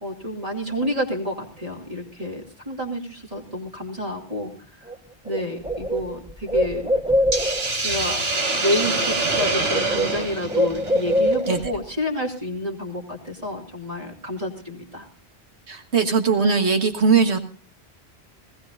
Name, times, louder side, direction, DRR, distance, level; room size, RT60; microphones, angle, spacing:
voice 1, 0.0-4.5 4.8-4.9 5.2-6.9 7.8-15.1, left 1 dB, 35° right, 0 dB, 2.7 m, -29 dB
Bird, 4.9-5.0 5.3-7.8 8.8-9.1 9.3-11.8, equal, 5° right, 0.6 m, -24 dB
Hiss, 7.3-11.6, right 2 dB, 70° right, 2.2 m, -25 dB
voice 2, 15.7-17.4, right 5 dB, 85° right, 6 dB, 1.8 m, -19 dB
20.0 x 16.0 x 2.6 m, 0.39 s
omnidirectional pair, 1.1 m